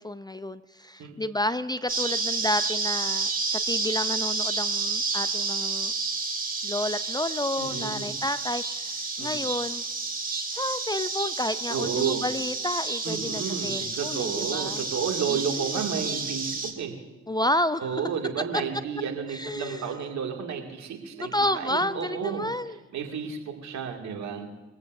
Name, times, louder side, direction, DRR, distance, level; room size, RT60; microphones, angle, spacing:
voice 1, 0.0-5.9 6.6-9.8 10.5-14.8 15.3-15.8 17.3-18.0 19.3-19.9 21.1-22.8, left 1 dB, 15° left, 13 dB, 0.5 m, -30 dB
sound 1, 1.9-16.7, right 4 dB, 25° right, 2.5 m, -30 dB
voice 2, 7.6-8.1 9.2-9.4 11.7-12.2 13.0-17.0 17.8-22.5 22.9-24.5, right 7 dB, 60° right, 2 dB, 2.4 m, -32 dB
23.0 x 14.5 x 2.7 m, 1.1 s
hypercardioid pair, 45°, 32 cm